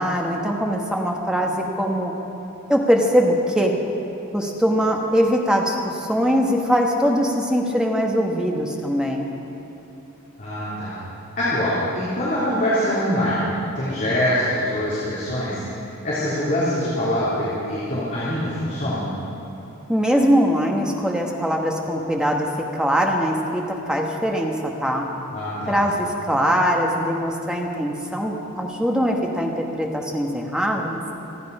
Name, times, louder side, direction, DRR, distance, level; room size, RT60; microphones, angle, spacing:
voice 1, 0.0-2.1 2.7-3.7 4.3-9.3 19.9-25.1 25.7-31.0, equal, 5° right, 0 dB, 1.3 m, -22 dB
voice 2, 10.4-11.0 11.4-13.5 13.7-15.6 16.0-19.1 25.3-25.8, left 1 dB, 35° left, -10 dB, 3.3 m, -24 dB
27.0 x 9.5 x 5.4 m, 3.0 s
head